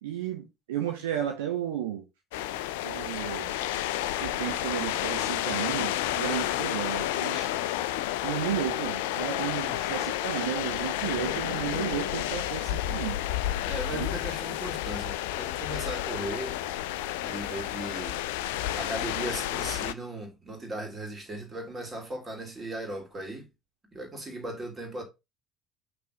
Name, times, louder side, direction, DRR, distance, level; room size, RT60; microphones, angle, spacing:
voice 1, 0.0-2.0 2.8-3.6 4.2-7.5 8.2-13.2 13.9-14.1, right 10 dB, 70° right, 1.2 m, -33 dB
sound 1, 2.3-19.9, left 13 dB, 70° left, 0.4 m, -31 dB
voice 2, 13.6-16.5 17.2-18.2 18.7-23.5 23.9-25.0, right 1 dB, 25° right, 3.0 m, -37 dB
6.0 x 3.8 x 5.1 m
figure-of-eight pair, 55°, 0 cm